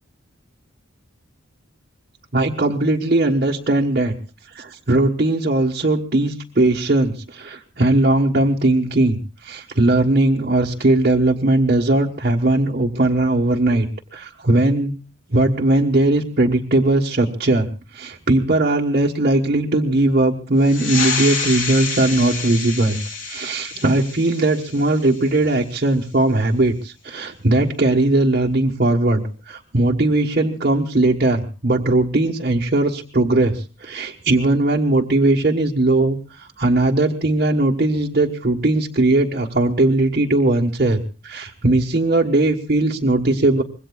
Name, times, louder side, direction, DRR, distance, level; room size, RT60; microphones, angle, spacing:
voice 1, 2.3-4.1 4.5-13.9 14.1-14.9 15.3-17.7 17.9-23.0 23.2-43.6, right 2 dB, 45° right, -2 dB, 1.3 m, -19 dB
sound 1, 20.6-25.7, left 4 dB, 70° left, 3.7 m, -28 dB
25.5 x 21.5 x 2.4 m, 0.35 s
head